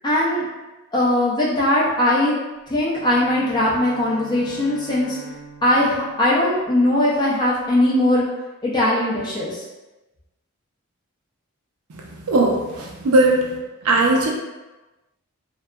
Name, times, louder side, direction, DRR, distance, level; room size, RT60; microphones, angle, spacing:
voice 1, 0.0-0.4 0.9-2.3 2.7-5.2 5.6-8.2 8.6-9.6, left 1 dB, 20° left, -6 dB, 0.5 m, -20 dB
Bowed string instrument, 2.9-7.2, right 2 dB, 45° left, 1.3 m, -42 dB
voice 2, 11.9-13.5 13.8-14.3, right 2 dB, 85° right, -1 dB, 0.5 m, -19 dB
2.7 x 2.3 x 2.2 m, 1.1 s
head